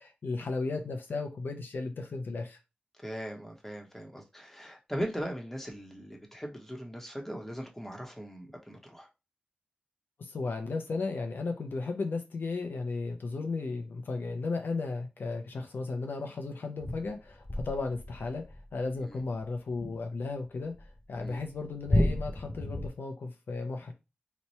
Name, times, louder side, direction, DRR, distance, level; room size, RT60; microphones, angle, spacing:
voice 1, 0.0-2.6 10.2-18.4 18.7-20.7 21.1-23.9, left 3 dB, 75° left, 0.6 m, -35 dB
voice 2, 3.0-9.1 19.1-19.2 21.2-21.4, equal, 10° left, 1.0 m, -39 dB
sound 1, 16.8-20.3 20.7-22.9, left 1 dB, 25° left, 0.5 m, -32 dB
3.0 x 2.2 x 4.1 m
wide cardioid pair, 65°, 3 cm